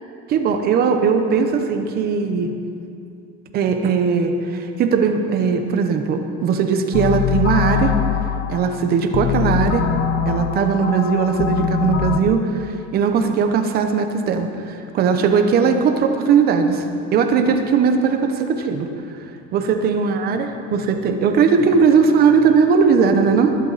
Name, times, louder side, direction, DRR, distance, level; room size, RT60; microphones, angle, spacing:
voice 1, 0.3-2.5 3.5-8.0 8.5-9.9 10.3-18.9 19.5-23.6, right 5 dB, 30° right, 6 dB, 0.9 m, -18 dB
sound 1, 6.9-12.2, left 9 dB, 35° left, 0.7 m, -22 dB
21.0 x 11.5 x 4.1 m, 2.6 s
cardioid pair, 180°, 31 cm